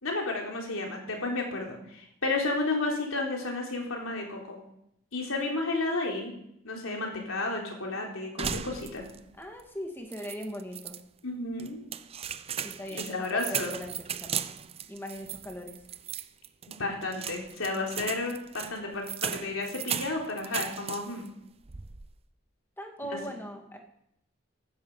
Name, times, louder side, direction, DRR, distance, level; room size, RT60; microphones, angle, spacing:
voice 1, 0.0-4.6 5.1-6.3 6.6-9.0 11.2-11.8 12.9-13.7 16.8-21.3 23.0-23.2, left 2 dB, 90° left, 1 dB, 3.8 m, -32 dB
sound 1, 8.4-9.3 9.6-9.7 10.1-11.0 11.6-21.3 21.6-22.1, right 8 dB, 30° right, 0.5 m, -37 dB
voice 2, 9.4-11.0 12.6-14.6 14.9-15.8 22.8-23.8, equal, 10° left, 3 dB, 2.1 m, -40 dB
15.5 x 12.5 x 5.6 m, 0.76 s
head